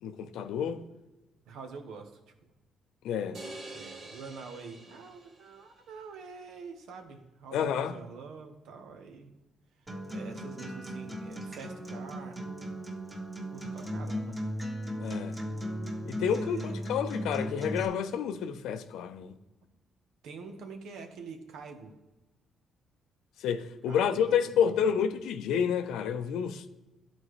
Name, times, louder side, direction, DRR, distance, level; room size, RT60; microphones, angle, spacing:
voice 1, 0.0-0.8 3.0-3.4 7.5-8.0 15.0-15.4 16.1-19.3 23.4-26.6, left 8 dB, 85° left, 0.5 m, -29 dB
voice 2, 1.5-2.2 3.7-9.3 10.1-12.4 13.5-14.4 16.3-16.8 20.2-21.9 23.9-24.9, right 5 dB, 85° right, 1.1 m, -46 dB
sound 1, 3.3-5.7, right 2 dB, 65° right, 1.5 m, -46 dB
Acoustic guitar, 9.9-17.9, equal, 20° right, 1.6 m, -37 dB
12.0 x 4.2 x 3.1 m
cardioid pair, 90°, 0 cm